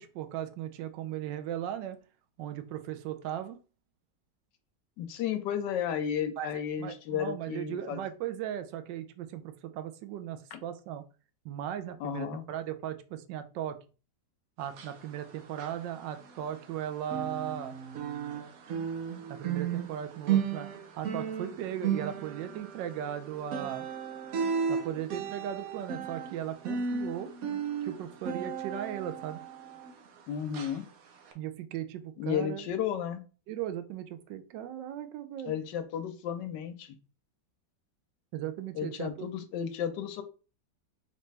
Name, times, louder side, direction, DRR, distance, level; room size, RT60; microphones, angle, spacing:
voice 1, 0.0-2.0 2.4-3.6 6.4-6.5 6.8-11.0 11.4-13.8 14.6-17.8 19.3-20.7 21.0-23.9 24.7-27.3 27.8-29.4 31.3-32.7 33.5-35.5 38.3-39.3, right 10 dB, 85° right, 10 dB, 1.3 m, -37 dB
voice 2, 5.0-8.0 10.5-10.6 12.0-12.5 30.3-30.9 32.2-33.2 35.4-37.0 38.7-40.2, left 9 dB, 80° left, 9 dB, 1.3 m, -33 dB
sound 1, 14.6-16.8 17.0-30.2 30.5-30.8 31.3-31.4, right 7 dB, 60° right, 1.0 m, -35 dB
3.8 x 3.3 x 3.2 m, 0.36 s
omnidirectional pair, 1.9 m